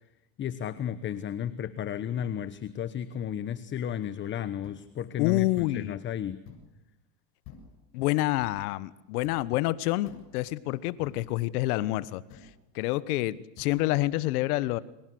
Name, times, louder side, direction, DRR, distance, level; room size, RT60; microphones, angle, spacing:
voice 1, 0.4-6.4, left 9 dB, 25° left, 14 dB, 1.1 m, -33 dB
sound 1, 4.6-4.8 5.6-5.8 6.4-6.7 7.4-7.9 8.4-8.7 9.2-9.5 10.1-10.4 11.0-11.4 12.3-12.6 13.6-13.8, left 6 dB, 45° left, 7.5 m, -50 dB
voice 2, 5.2-6.0 7.9-12.2 12.7-14.8, left 18 dB, 60° left, 17 dB, 1.4 m, -27 dB
29.5 x 25.0 x 7.9 m, 0.88 s
supercardioid pair, 135°, 50 cm